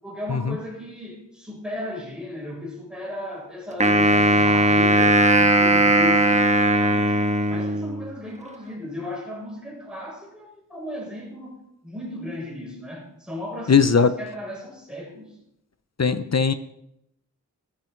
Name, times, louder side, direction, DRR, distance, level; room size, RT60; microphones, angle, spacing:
voice 1, 0.0-7.1 7.5-15.3, left 1 dB, 5° right, -3 dB, 7.1 m, -35 dB
Wind instrument woodwind instrument, 3.8-8.1, right 1 dB, 20° right, 1.5 m, -18 dB
voice 2, 13.7-14.1 16.0-16.5, left 6 dB, 50° left, 12 dB, 0.9 m, -19 dB
15.0 x 13.0 x 4.7 m, 0.77 s
wide cardioid pair, 50°, 33 cm